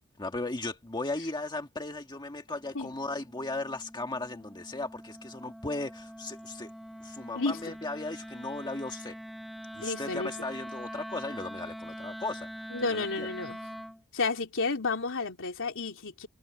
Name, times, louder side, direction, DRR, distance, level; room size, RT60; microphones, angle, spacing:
voice 1, 0.2-6.7 7.0-9.2 9.7-12.5 12.9-13.3, left 2 dB, 20° left, 1.6 m, -36 dB
Wind instrument woodwind instrument, 2.5-14.0, equal, ahead, 1.2 m, -44 dB
voice 2, 9.8-10.3 12.7-13.6 14.1-16.3, left 3 dB, 60° left, 3.2 m, -31 dB
head